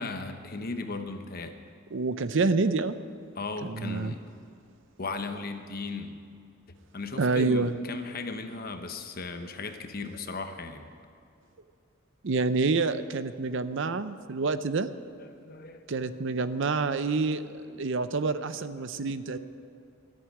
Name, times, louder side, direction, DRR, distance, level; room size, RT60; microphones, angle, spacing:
voice 1, 0.0-1.6 3.4-4.2 5.0-6.2 6.9-10.9 15.2-17.2 17.7-18.0 18.6-19.4, left 3 dB, 45° left, 7 dB, 1.0 m, -37 dB
voice 2, 1.9-3.0 3.6-4.1 7.2-7.7 12.2-14.9 15.9-19.4, right 4 dB, 60° right, 12 dB, 0.5 m, -27 dB
13.5 x 7.8 x 9.5 m, 2.4 s
head